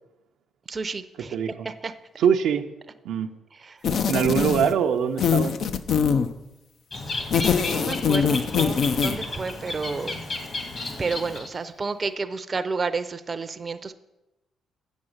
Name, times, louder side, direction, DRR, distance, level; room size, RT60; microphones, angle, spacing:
voice 1, 0.7-1.9 3.6-3.8 7.7-10.2 11.0-13.9, right 4 dB, 30° right, 10 dB, 0.6 m, -31 dB
voice 2, 1.3-1.7 2.2-2.7 3.0-3.4 4.1-5.6, right 8 dB, 75° right, 5 dB, 0.6 m, -23 dB
sound 1, 3.8-4.8 5.2-6.3 7.2-9.2, left 6 dB, 60° left, 0.6 m, -23 dB
Bird, 6.9-11.7, left 2 dB, 45° left, 1.9 m, -33 dB
7.7 x 7.3 x 6.5 m, 0.96 s
cardioid pair, 90°, 0 cm